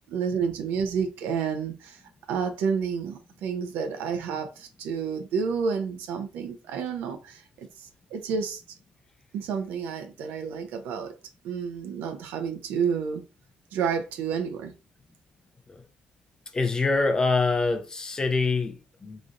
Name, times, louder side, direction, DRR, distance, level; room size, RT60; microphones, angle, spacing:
voice 1, 0.1-2.0 2.3-8.6 9.3-11.1 11.4-13.2 13.7-14.7, right 6 dB, 85° right, 0.7 m, -30 dB
voice 2, 16.5-19.2, left 3 dB, 20° left, 0.5 m, -25 dB
3.8 x 3.1 x 2.6 m
cardioid pair, 125°, 3 cm